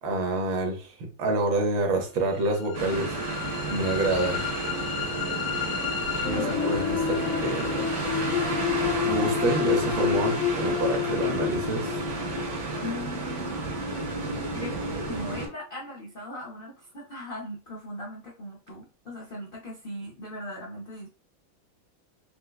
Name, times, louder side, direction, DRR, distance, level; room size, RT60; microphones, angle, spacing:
voice 1, 0.0-3.1 3.7-4.4 6.2-7.9 9.0-12.0, right 2 dB, 90° right, 3 dB, 1.6 m, -27 dB
sound 1, 2.4-14.4, left 8 dB, 65° left, 0.9 m, -30 dB
sound 2, 2.7-15.5, right 3 dB, 65° right, 1.6 m, -32 dB
voice 2, 12.8-13.8 14.5-21.1, left 1 dB, 85° left, -4 dB, 0.5 m, -39 dB
4.8 x 2.1 x 2.2 m, 0.35 s
omnidirectional pair, 2.1 m